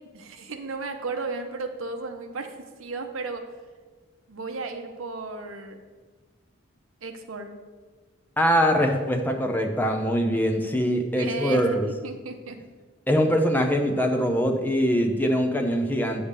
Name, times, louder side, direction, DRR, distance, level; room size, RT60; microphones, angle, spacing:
voice 1, 0.1-3.4 4.3-5.8 7.0-7.5 11.2-12.6, right 3 dB, 85° right, 6 dB, 0.8 m, -34 dB
voice 2, 8.4-11.9 13.1-16.2, equal, 10° left, 3 dB, 0.5 m, -23 dB
8.6 x 3.4 x 6.6 m, 1.4 s
head